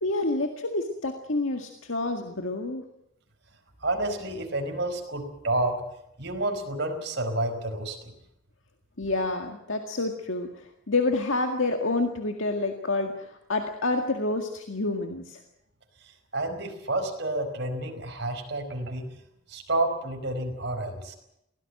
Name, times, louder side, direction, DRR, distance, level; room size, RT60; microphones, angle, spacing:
voice 1, 0.0-2.9 9.0-15.4, left 2 dB, 70° left, 4 dB, 2.0 m, -28 dB
voice 2, 3.8-5.8 6.2-8.1 16.3-19.1 19.5-21.1, right 2 dB, 55° right, 4 dB, 4.8 m, -29 dB
23.5 x 18.0 x 7.9 m, 0.80 s
head